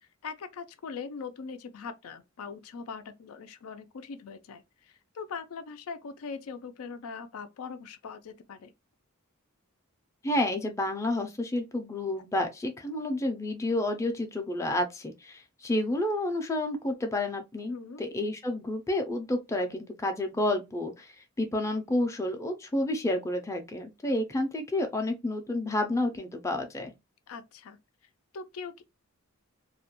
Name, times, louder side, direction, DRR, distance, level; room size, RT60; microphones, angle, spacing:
voice 1, 0.0-8.7 17.7-18.0 27.3-27.8 28.3-28.8, left 5 dB, 85° left, 0.4 m, -41 dB
voice 2, 10.2-26.9, left 1 dB, 15° left, 0.4 m, -30 dB
2.3 x 2.1 x 2.9 m
head